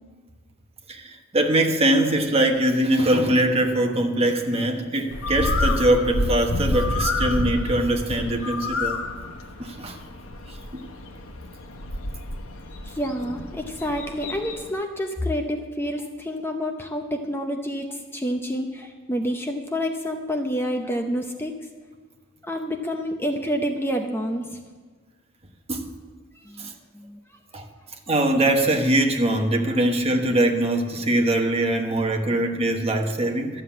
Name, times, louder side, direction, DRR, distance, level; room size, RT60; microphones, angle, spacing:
voice 1, 0.9-9.0 9.6-10.0 10.7-10.8 25.7-25.9 26.6-26.7 27.5-27.7 28.1-33.6, right 1 dB, 30° right, 3 dB, 1.2 m, -22 dB
Bird, 5.1-14.7, left 2 dB, 90° left, 1.2 m, -29 dB
voice 2, 12.8-21.6 22.4-24.6 26.4-26.7 26.9-27.2, equal, 10° left, 4 dB, 0.7 m, -28 dB
12.5 x 7.4 x 8.4 m, 1.5 s
head